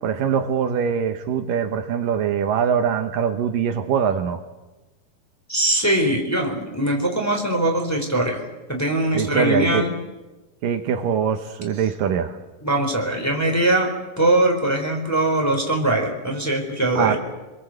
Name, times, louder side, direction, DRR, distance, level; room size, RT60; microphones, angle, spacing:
voice 1, 0.0-4.4 9.1-9.9 10.6-12.4 17.0-17.2, right 7 dB, 75° right, 7 dB, 2.7 m, -23 dB
voice 2, 5.5-8.4 8.7-9.9 12.6-13.9 14.2-17.2, right 1 dB, 5° left, 1 dB, 3.9 m, -21 dB
27.0 x 22.0 x 8.0 m, 1.1 s
omnidirectional pair, 4.2 m